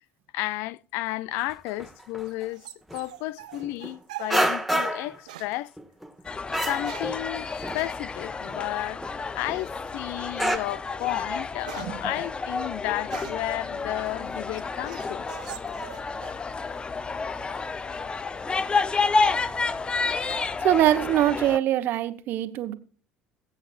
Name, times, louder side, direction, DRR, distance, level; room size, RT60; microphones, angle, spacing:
voice 1, 0.3-2.6 2.9-5.7 6.7-9.0 9.3-15.3 16.3-16.4, left 17 dB, 65° left, 0.4 m, -32 dB
sound 1, 1.3-1.5 1.8-2.4 2.9-3.0 3.5-3.9 4.3-5.2 5.5-6.2 6.5-7.4 7.6-7.9 8.2-8.3 8.5-9.2 9.5-9.6 9.9-10.0 10.4-10.6, right 1 dB, ahead, 1.5 m, -28 dB
sound 2, 1.7-5.0 5.3-5.6 6.5-7.2 7.7-8.0 9.4-9.8 10.4-10.5 10.9-13.6 14.1-16.4 16.7-17.3, right 14 dB, 75° right, 0.8 m, -44 dB
sound 3, 6.2-21.6, left 4 dB, 25° left, 0.6 m, -30 dB
voice 2, 20.6-22.7, right 13 dB, 55° right, 1.1 m, -23 dB
23.0 x 8.0 x 2.5 m
figure-of-eight pair, 60°, 4 cm